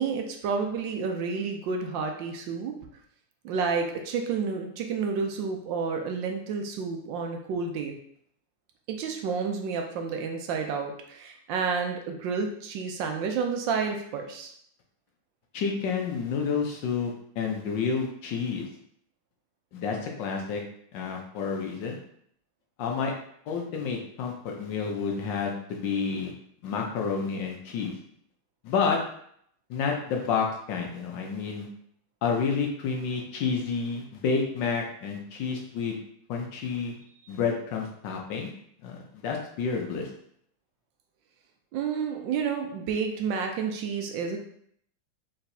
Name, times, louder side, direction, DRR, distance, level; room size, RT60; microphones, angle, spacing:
voice 1, 0.0-2.8 3.4-7.9 8.9-14.5 41.7-44.4, right 5 dB, 75° right, 4 dB, 1.2 m, -30 dB
voice 2, 15.5-18.7 19.7-20.6 20.9-22.0 22.8-23.1 23.5-26.3 26.6-27.9 28.6-29.0 29.7-31.7 32.2-36.0 36.3-36.9 37.3-38.5 38.8-40.1, left 5 dB, 70° left, 1 dB, 1.3 m, -29 dB
4.4 x 4.0 x 2.6 m, 0.67 s
omnidirectional pair, 2.2 m